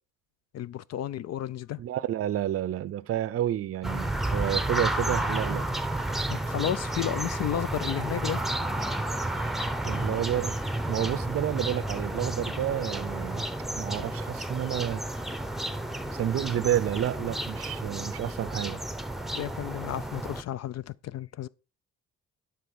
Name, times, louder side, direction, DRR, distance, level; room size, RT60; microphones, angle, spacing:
voice 1, 0.5-1.8 6.3-8.4 19.3-21.5, left 11 dB, 60° left, 0.5 m, -32 dB
voice 2, 1.8-5.7 9.8-10.6 10.9-15.0 16.1-18.8, right 11 dB, 50° right, 0.5 m, -30 dB
sound 1, 3.8-20.4, right 1 dB, ahead, 0.7 m, -31 dB
12.0 x 4.4 x 6.3 m
cardioid pair, 90°, 30 cm